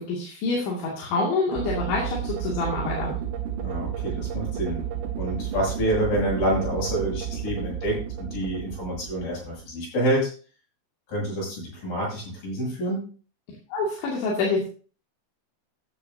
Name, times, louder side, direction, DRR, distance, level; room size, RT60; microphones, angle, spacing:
voice 1, 0.0-3.1 13.7-14.6, left 3 dB, 75° left, -4 dB, 4.8 m, -26 dB
sound 1, 1.5-9.7, right 9 dB, 75° right, 3.3 m, -32 dB
voice 2, 3.6-4.8 5.2-10.3 11.1-13.1, right 1 dB, 50° left, -3 dB, 9.4 m, -27 dB
14.5 x 11.0 x 2.8 m, 0.38 s
omnidirectional pair, 5.3 m